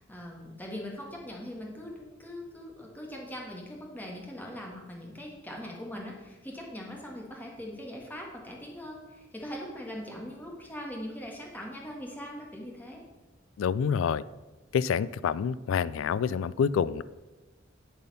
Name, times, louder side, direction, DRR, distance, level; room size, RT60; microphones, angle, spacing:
voice 1, 0.0-13.0, equal, 10° left, -1 dB, 1.6 m, -41 dB
voice 2, 13.6-14.2 14.7-17.0, left 7 dB, 90° left, 18 dB, 0.3 m, -27 dB
10.0 x 4.2 x 5.5 m, 1.1 s
head